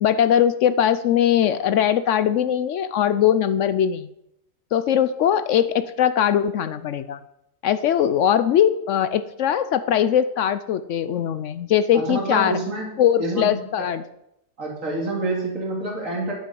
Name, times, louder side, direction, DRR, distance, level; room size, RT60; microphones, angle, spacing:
voice 1, 0.0-4.1 4.7-7.2 7.6-12.6 13.0-14.0, left 9 dB, 70° left, 12 dB, 0.9 m, -20 dB
voice 2, 11.9-12.9 13.2-13.9 14.6-16.3, right 2 dB, 75° right, -1 dB, 3.2 m, -27 dB
10.5 x 9.0 x 5.4 m, 0.82 s
omnidirectional pair, 1.4 m